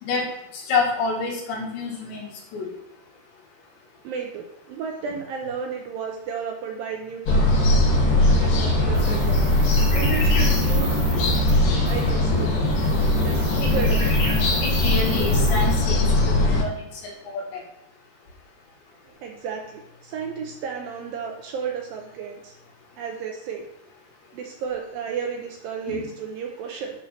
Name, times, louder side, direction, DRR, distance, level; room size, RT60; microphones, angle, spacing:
voice 1, 0.5-2.7 13.6-13.7 14.6-16.7 17.0-17.6 25.9-26.0, left 4 dB, 80° left, -2 dB, 4.2 m, -28 dB
voice 2, 4.0-7.7 8.2-9.4 9.9-11.0 11.7-12.6 13.2-14.2 19.0-22.6 23.0-23.7 24.3-27.0, right 6 dB, 80° right, 2 dB, 2.1 m, -33 dB
sound 1, 7.3-16.6, left 1 dB, 60° left, 3.1 m, -20 dB
sound 2, 8.9-11.6 11.9-12.1 12.7-15.8, right 4 dB, 45° right, 1.6 m, -38 dB
9.7 x 4.4 x 6.4 m, 0.80 s
omnidirectional pair, 5.0 m